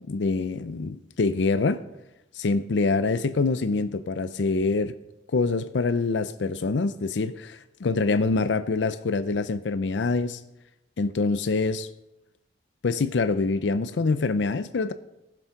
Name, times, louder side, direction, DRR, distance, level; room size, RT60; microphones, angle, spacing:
voice 1, 0.1-1.8 2.4-4.9 5.3-10.4 11.0-11.9 12.8-14.9, left 3 dB, 85° left, 0.5 m, -25 dB
14.5 x 7.0 x 5.8 m
head